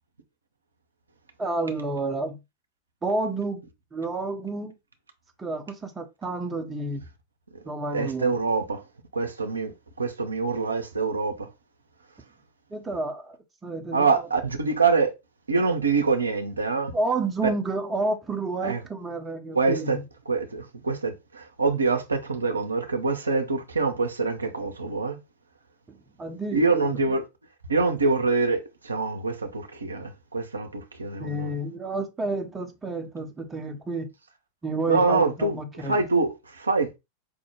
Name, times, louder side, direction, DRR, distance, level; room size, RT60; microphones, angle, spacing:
voice 1, 1.4-2.4 3.0-3.6 3.9-4.7 5.4-7.0 7.7-8.3 12.7-13.4 13.6-14.3 16.9-20.0 25.9-27.0 31.2-34.1 34.6-36.0, right 2 dB, 15° right, 0.6 m, -30 dB
voice 2, 7.9-8.8 9.1-11.5 13.9-15.1 15.5-16.9 17.4-17.5 18.6-18.8 19.5-20.0 20.3-25.2 26.5-27.2 27.7-31.5 34.9-37.0, right 4 dB, 75° right, 0.5 m, -25 dB
4.8 x 2.0 x 3.0 m
figure-of-eight pair, 90°, 0 cm